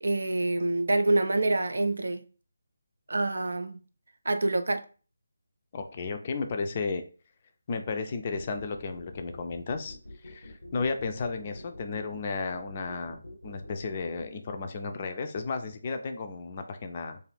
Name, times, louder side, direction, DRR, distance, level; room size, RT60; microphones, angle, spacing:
voice 1, 0.0-2.2 3.1-3.8 4.2-4.8, right 2 dB, 70° right, 0.3 m, -26 dB
voice 2, 5.7-7.0 7.7-10.0 10.2-17.2, left 4 dB, 35° left, 0.4 m, -33 dB
sound 1, 8.4-14.3, left 1 dB, 80° left, 0.6 m, -46 dB
2.5 x 2.4 x 3.2 m
figure-of-eight pair, 155°, 0 cm